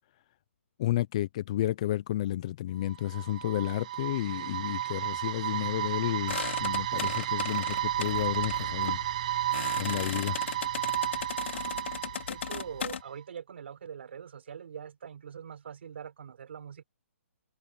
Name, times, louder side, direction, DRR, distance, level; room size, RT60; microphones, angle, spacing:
voice 1, 0.8-9.0 9.8-10.4, left 13 dB, 25° left, 0.6 m, -31 dB
sound 1, 2.8-12.9, right 13 dB, 30° right, 0.8 m, -33 dB
sound 2, 6.3-13.0, left 7 dB, 55° left, 3.9 m, -38 dB
voice 2, 12.1-16.8, right 7 dB, 50° right, 6.9 m, -43 dB
hypercardioid pair, 170°, 8 cm